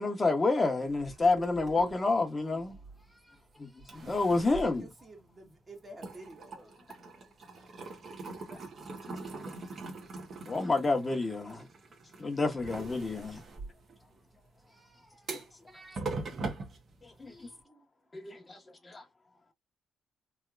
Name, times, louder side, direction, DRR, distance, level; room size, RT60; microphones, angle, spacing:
voice 1, 0.0-2.8 3.6-4.8 8.5-8.6 9.2-9.5 10.5-11.6 12.2-13.4 15.3-15.4 17.0-17.3 18.1-19.0, left 3 dB, 25° left, 0.9 m, -29 dB
Kitchen - coffee or tea being poured into mug and stirred, 0.9-3.4 3.8-5.6 5.9-17.6, right 3 dB, 45° right, 1.1 m, -43 dB
voice 2, 3.1-4.1 10.6-10.7 12.7-13.1 14.7-15.3 15.7-16.0 17.3-17.8, right 1 dB, 10° right, 1.1 m, -54 dB
voice 3, 4.3-6.8, right 1 dB, 30° right, 1.4 m, -48 dB
3.3 x 2.8 x 2.4 m
cardioid pair, 90°, 0 cm